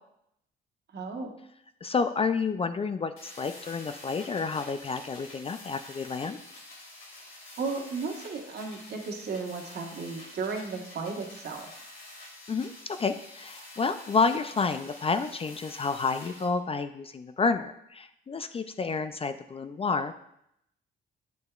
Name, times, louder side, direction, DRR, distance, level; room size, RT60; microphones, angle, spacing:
voice 1, 0.9-1.3 7.2-11.7, right 4 dB, 55° right, 2 dB, 1.4 m, -35 dB
voice 2, 1.8-6.4 12.5-20.1, left 4 dB, 30° left, 10 dB, 0.4 m, -30 dB
sound 1, 3.2-16.4, left 1 dB, 80° left, 2.3 m, -48 dB
8.4 x 6.6 x 2.4 m, 0.76 s
cardioid pair, 90°, 20 cm